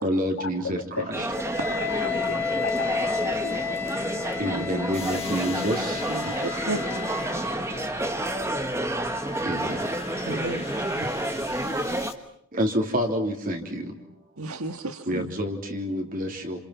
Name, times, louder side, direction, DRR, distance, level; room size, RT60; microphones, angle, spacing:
voice 1, 0.0-1.3 4.1-6.5 9.4-10.0 12.5-14.0 15.0-16.6, equal, 40° right, 3 dB, 3.4 m, -28 dB
voice 2, 1.0-3.8 4.0-4.9, left 3 dB, 65° left, -1 dB, 2.9 m, -38 dB
sound 1, 1.1-12.1, right 1 dB, 15° right, 1.7 m, -30 dB
Wind instrument woodwind instrument, 1.3-7.4, left 6 dB, 10° left, 2.0 m, -32 dB
sound 2, 4.9-12.1, left 5 dB, 25° left, 2.3 m, -41 dB
voice 3, 6.1-6.8 10.2-10.9 11.6-11.8 14.4-15.3, right 2 dB, 90° right, 7 dB, 1.7 m, -33 dB
30.0 x 28.0 x 5.9 m, 0.67 s
head